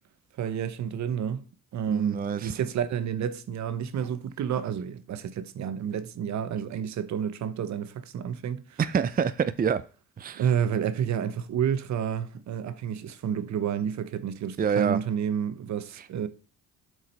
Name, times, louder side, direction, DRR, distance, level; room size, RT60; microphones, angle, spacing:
voice 1, 0.4-1.5 1.7-8.8 10.3-16.3, right 8 dB, 65° right, 1.0 m, -30 dB
voice 2, 1.9-2.5 8.8-9.8 10.2-10.4 14.6-15.0, right 7 dB, 30° right, 0.6 m, -26 dB
7.4 x 5.0 x 5.4 m
cardioid pair, 90°, 30 cm